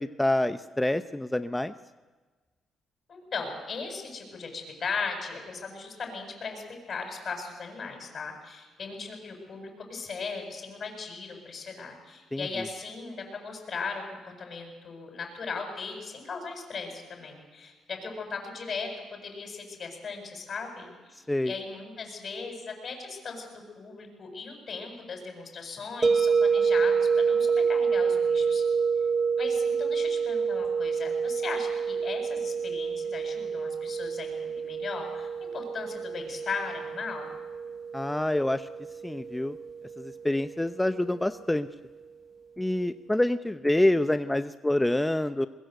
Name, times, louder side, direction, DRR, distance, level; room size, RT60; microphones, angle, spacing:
voice 1, 0.0-1.7 12.3-12.7 21.3-21.5 37.9-38.7 39.0-39.6 40.0-41.7 42.6-45.5, left 1 dB, 10° left, 11 dB, 0.7 m, -27 dB
voice 2, 3.1-6.6 6.9-21.2 21.4-28.6 29.4-37.3, left 4 dB, 45° left, 3 dB, 7.7 m, -38 dB
sound 1, 26.0-41.0, right 5 dB, 30° right, 0.8 m, -28 dB
22.0 x 22.0 x 8.1 m, 1.3 s
cardioid pair, 90°, 0 cm